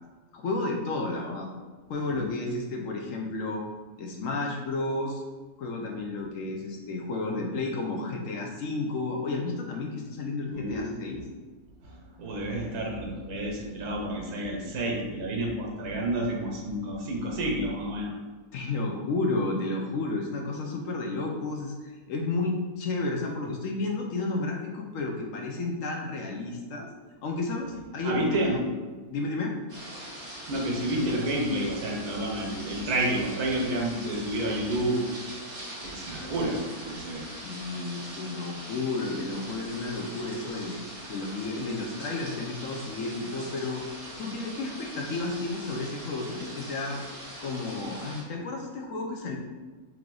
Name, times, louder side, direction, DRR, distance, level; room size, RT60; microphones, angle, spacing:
voice 1, 0.3-1.5 1.9-3.6 4.0-5.2 5.6-11.2 18.5-26.9 27.2-28.6 29.1-29.5 37.4-40.8 41.1-43.8 44.2-47.0 47.4-49.4, left 3 dB, 70° left, 1 dB, 0.9 m, -32 dB
voice 2, 10.5-11.2 11.8-18.1 28.0-28.6 30.5-35.0 35.8-37.3, right 1 dB, 80° right, 0 dB, 1.4 m, -30 dB
sound 1, 29.7-48.2, right 1 dB, 40° right, 1.3 m, -42 dB
3.4 x 3.4 x 3.7 m, 1.4 s
omnidirectional pair, 1.6 m